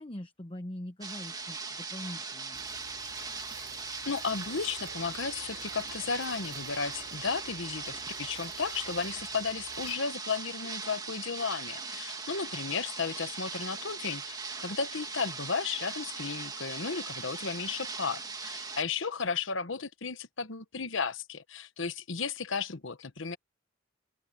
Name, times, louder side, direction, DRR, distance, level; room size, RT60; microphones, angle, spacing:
voice 1, 0.0-2.6, left 1 dB, 25° left, 1.0 m, -42 dB
sound 1, 1.0-18.8, right 4 dB, 20° right, 1.7 m, -40 dB
sound 2, 2.5-9.9, right 4 dB, 50° right, 6.1 m, -52 dB
voice 2, 4.1-23.4, left 5 dB, 65° left, 1.1 m, -34 dB
open air
head